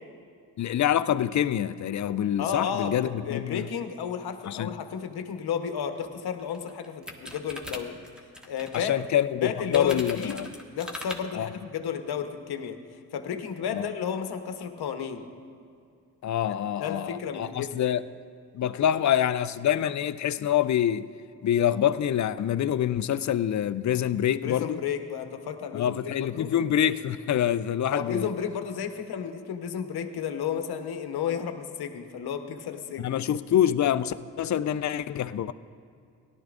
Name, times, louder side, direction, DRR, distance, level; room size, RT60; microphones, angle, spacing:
voice 1, 0.6-3.7 4.5-4.7 8.7-10.5 11.3-11.5 13.7-13.8 16.2-18.0 18.5-21.1 21.4-24.8 25.7-28.3 33.0-35.5, left 10 dB, 45° left, 0.5 m, -26 dB
voice 2, 2.4-8.0 8.5-9.0 9.4-10.4 10.7-12.8 13.1-15.2 16.8-17.7 24.4-26.5 27.9-33.1, left 7 dB, 65° left, 1.1 m, -32 dB
sound 1, 6.0-6.1 6.4-8.9 9.7-11.2, left 1 dB, ahead, 1.6 m, -40 dB
17.5 x 12.0 x 2.5 m
hypercardioid pair, 45°, 42 cm